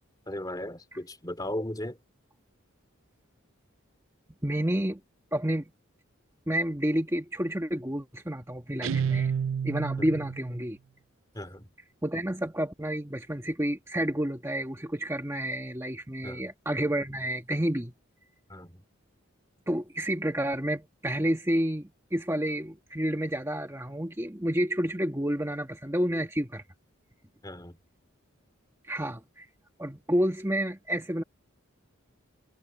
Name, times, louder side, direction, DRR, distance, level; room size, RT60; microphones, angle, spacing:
voice 1, 0.3-2.0 10.0-10.1 11.3-11.7 16.2-16.5 18.5-18.8 27.4-27.8, left 1 dB, 20° left, 2.9 m, -36 dB
voice 2, 4.4-5.0 5.3-5.7 6.5-9.3 9.6-10.8 12.0-17.9 19.7-26.6 28.8-29.5 29.8-31.2, right 1 dB, 15° right, 1.5 m, -30 dB
Guitar, 8.8-10.5, right 7 dB, 70° right, 0.4 m, -29 dB
head